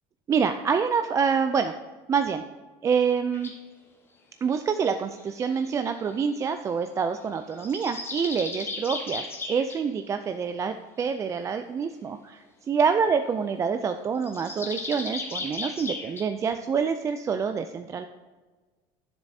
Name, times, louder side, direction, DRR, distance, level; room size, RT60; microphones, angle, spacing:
voice 1, 0.3-1.7 2.1-2.4 2.8-3.5 4.4-12.4 12.7-18.1, right 6 dB, 25° right, 7 dB, 0.3 m, -26 dB
sound 1, 3.3-3.6 5.1-6.3 7.5-9.8 14.2-16.2, left 3 dB, 20° left, 1.1 m, -36 dB
9.7 x 7.3 x 2.7 m, 1.3 s
supercardioid pair, 130°, 13 cm